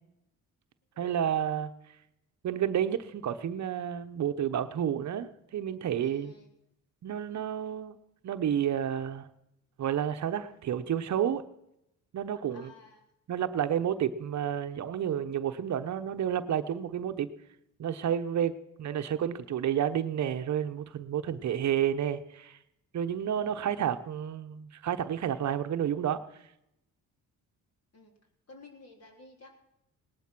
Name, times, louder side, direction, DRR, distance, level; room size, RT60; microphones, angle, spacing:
voice 1, 1.0-1.7 2.4-6.3 7.0-8.0 8.2-9.3 9.8-11.4 12.1-12.7 13.3-17.3 17.8-18.5 18.8-22.6 22.9-26.2, right 9 dB, 55° right, 9 dB, 0.9 m, -30 dB
voice 2, 6.0-6.5 11.5-11.6 12.5-13.1 27.9-28.1 28.5-29.6, left 3 dB, 45° left, 2 dB, 3.7 m, -53 dB
19.0 x 11.0 x 6.0 m, 0.84 s
cardioid pair, 100°, 34 cm